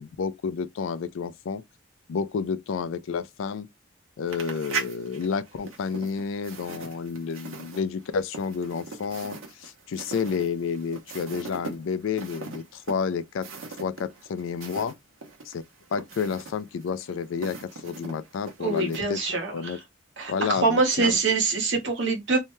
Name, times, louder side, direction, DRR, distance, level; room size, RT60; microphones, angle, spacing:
voice 1, 0.0-1.6 2.1-3.7 4.2-13.5 13.8-15.0 15.5-15.6 15.9-19.8 20.3-21.2, left 6 dB, 75° left, 0.4 m, -30 dB
sound 1, 4.3-14.9 15.2-19.0, right 4 dB, 80° right, 0.9 m, -40 dB
voice 2, 18.6-19.8 20.2-22.4, right 3 dB, 60° right, 1.1 m, -24 dB
2.7 x 2.2 x 3.0 m
head